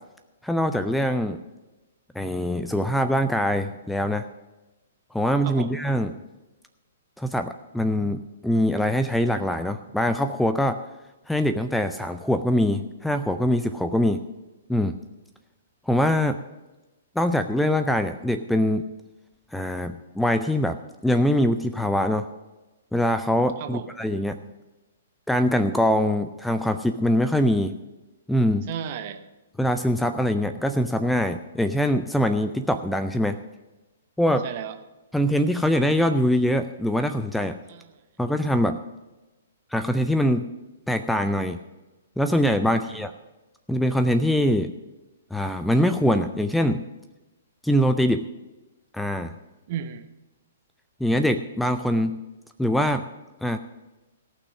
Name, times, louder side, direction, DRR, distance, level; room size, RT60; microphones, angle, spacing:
voice 1, 0.4-1.4 2.1-4.3 5.1-6.1 7.2-10.8 11.3-14.2 14.7-15.0 15.9-16.4 17.2-18.8 19.5-20.8 21.0-22.3 22.9-24.4 25.3-27.8 28.3-28.7 29.6-33.4 34.2-34.5 35.1-37.6 38.2-38.8 39.7-40.5 40.9-41.6 42.2-43.1 43.7-44.7 45.3-46.8 47.6-48.3 48.9-49.3 51.0-52.2 52.6-53.1 53.4-53.6, equal, ahead, 9 dB, 0.4 m, -23 dB
voice 2, 5.4-5.8 23.6-23.9 28.7-29.2 34.4-34.8 37.7-38.0 42.6-43.0 49.7-50.1, right 9 dB, 40° right, 8 dB, 1.0 m, -34 dB
17.5 x 6.0 x 6.2 m, 1.1 s
figure-of-eight pair, 115°, 0 cm